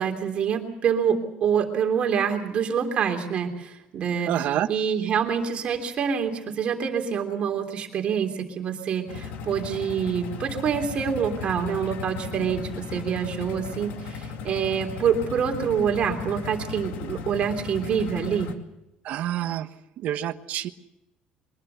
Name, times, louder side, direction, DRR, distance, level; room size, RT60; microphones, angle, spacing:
voice 1, 0.0-4.3 4.7-18.5, right 7 dB, 40° right, 4 dB, 3.3 m, -26 dB
voice 2, 4.3-4.7 19.0-19.7 20.0-20.7, right 12 dB, 55° right, 10 dB, 1.2 m, -27 dB
sound 1, 9.1-18.5, left 6 dB, 75° left, 2.2 m, -36 dB
23.0 x 21.5 x 6.9 m, 0.88 s
cardioid pair, 165°, 3 cm